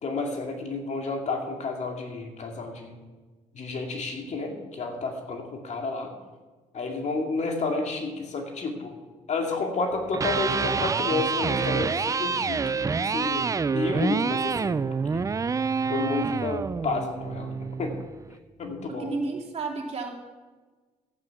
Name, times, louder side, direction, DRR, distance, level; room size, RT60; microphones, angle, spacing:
voice 1, 0.0-2.9 3.5-6.1 6.7-8.9 9.3-13.5 13.7-14.8 15.1-15.2 15.9-17.5 17.8-17.9 18.6-19.1, left 3 dB, 55° left, 2 dB, 2.3 m, -30 dB
Electric guitar, 10.0-18.1, right 5 dB, 25° right, 0.4 m, -27 dB
voice 2, 18.9-20.1, right 3 dB, 50° right, -1 dB, 2.9 m, -32 dB
12.5 x 8.6 x 5.8 m, 1.3 s
supercardioid pair, 75°, 14 cm